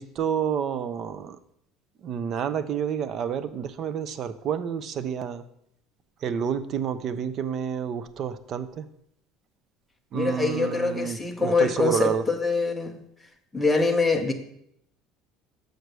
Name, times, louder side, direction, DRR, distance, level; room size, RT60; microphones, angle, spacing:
voice 1, 0.0-1.4 2.0-5.4 6.2-8.9 10.1-12.2, right 8 dB, 35° right, 13 dB, 0.5 m, -29 dB
voice 2, 10.1-13.0 13.5-14.3, left 3 dB, 5° left, 3 dB, 0.7 m, -24 dB
6.4 x 4.7 x 6.6 m, 0.73 s
cardioid pair, 170°, 0 cm